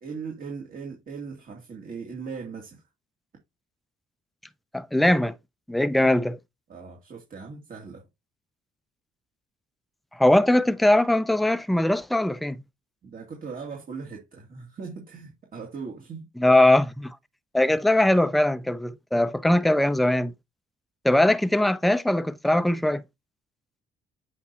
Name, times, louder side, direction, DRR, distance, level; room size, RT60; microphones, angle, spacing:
voice 1, 0.0-2.8 6.7-8.0 13.0-16.3, right 5 dB, 45° right, 2.4 m, -39 dB
voice 2, 4.7-5.4 5.7-6.4 10.2-12.6 16.4-17.2 17.5-20.3 21.0-23.0, left 1 dB, ahead, 0.5 m, -21 dB
8.1 x 5.3 x 2.8 m
cardioid pair, 90°, 20 cm